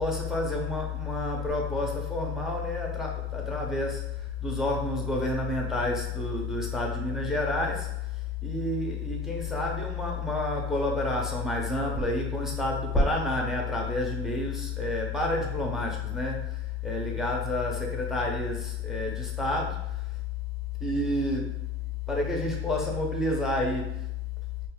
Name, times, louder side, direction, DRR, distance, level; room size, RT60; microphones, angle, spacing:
voice 1, 0.0-20.2 20.8-21.7 22.1-24.1, left 2 dB, ahead, 0 dB, 0.5 m, -29 dB
5.2 x 2.4 x 2.2 m, 0.86 s
supercardioid pair, 135°, 31 cm